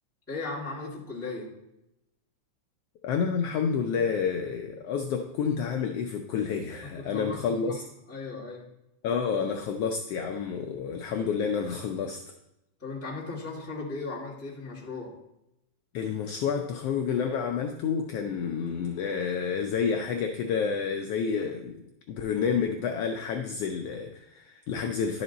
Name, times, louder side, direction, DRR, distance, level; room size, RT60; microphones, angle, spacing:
voice 1, 0.3-1.5 6.8-7.8 8.1-8.7 12.8-15.1, left 3 dB, 5° left, -7 dB, 1.6 m, -37 dB
voice 2, 3.0-7.8 9.0-12.2 15.9-25.2, left 6 dB, 85° left, 4 dB, 1.3 m, -29 dB
11.0 x 5.2 x 4.0 m, 0.88 s
omnidirectional pair, 3.3 m